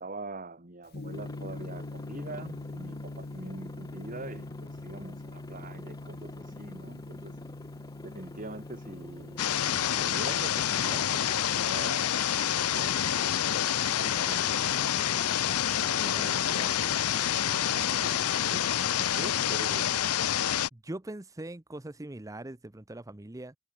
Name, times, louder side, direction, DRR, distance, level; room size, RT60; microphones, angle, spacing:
voice 1, 0.0-7.4 8.0-14.8 15.8-16.5 16.8-16.9 17.7-18.7 19.0-20.0, right 2 dB, 40° right, 2.6 m, -44 dB
Gong, 0.9-19.5, left 2 dB, 45° left, 0.8 m, -45 dB
Aircraft, 1.1-19.4, left 1 dB, 20° left, 6.1 m, -48 dB
sound 1, 9.4-20.7, left 10 dB, 90° left, 0.7 m, -27 dB
voice 2, 15.7-16.8 20.7-23.5, right 1 dB, 15° right, 0.7 m, -42 dB
head